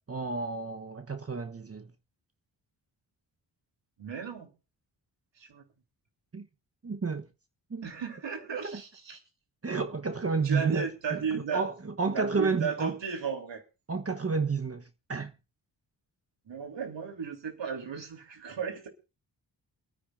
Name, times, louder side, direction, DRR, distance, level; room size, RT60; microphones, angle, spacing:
voice 1, 0.1-1.9 6.3-6.5 6.8-7.3 7.7-7.9 8.6-8.8 9.6-13.0 13.9-15.3, right 4 dB, 30° right, 1.0 m, -31 dB
voice 2, 4.0-4.5 5.4-5.6 7.8-9.2 10.4-11.6 12.1-13.6 16.4-18.9, right 6 dB, 70° right, 3.3 m, -35 dB
28.5 x 9.7 x 2.6 m
cardioid pair, 65°, 45 cm